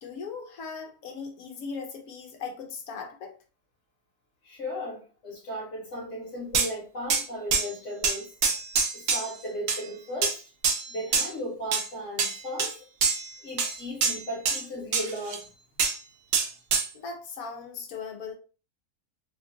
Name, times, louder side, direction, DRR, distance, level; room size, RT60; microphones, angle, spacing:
voice 1, 0.0-3.4 16.9-18.3, left 5 dB, 70° left, 1.0 m, -38 dB
voice 2, 4.4-8.3 8.9-10.4 10.9-12.7 13.4-15.4, equal, 55° left, 1.2 m, -36 dB
sound 1, 6.5-6.7 7.1-7.2 7.5-7.7 8.0-9.4 9.7-9.8 10.2-10.4 10.6-11.3 11.7-11.9 12.2-12.7 13.0-13.3 13.6-14.6 14.9-15.4 15.8-16.0 16.3-16.9, right 5 dB, 65° right, 0.7 m, -25 dB
2.9 x 2.4 x 2.5 m
omnidirectional pair, 1.6 m